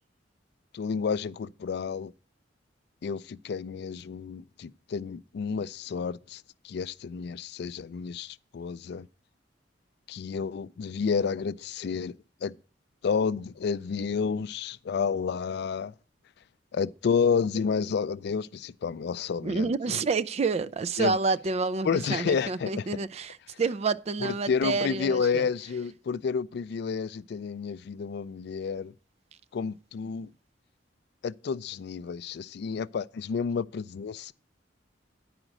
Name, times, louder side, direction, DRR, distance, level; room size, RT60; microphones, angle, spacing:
voice 1, 0.7-2.1 3.0-9.1 10.1-12.1 12.4-12.5 13.0-15.9 16.7-19.7 21.0-21.2 21.8-22.7 24.2-28.9 29.5-30.3 31.2-34.3, left 6 dB, 65° left, 0.3 m, -30 dB
voice 2, 19.4-25.5, right 4 dB, 35° right, 0.4 m, -28 dB
9.9 x 5.0 x 6.1 m
head